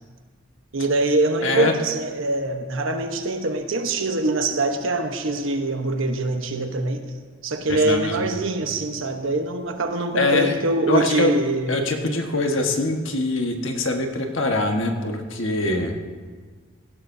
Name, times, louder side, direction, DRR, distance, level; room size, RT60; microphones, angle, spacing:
voice 1, 0.7-7.1 7.4-11.9, right 2 dB, 70° right, 5 dB, 1.1 m, -24 dB
voice 2, 1.4-1.7 7.7-8.2 10.1-10.5 10.9-11.3 11.7-15.9, left 2 dB, 65° left, 3 dB, 1.5 m, -23 dB
17.5 x 16.0 x 2.8 m, 1.5 s
head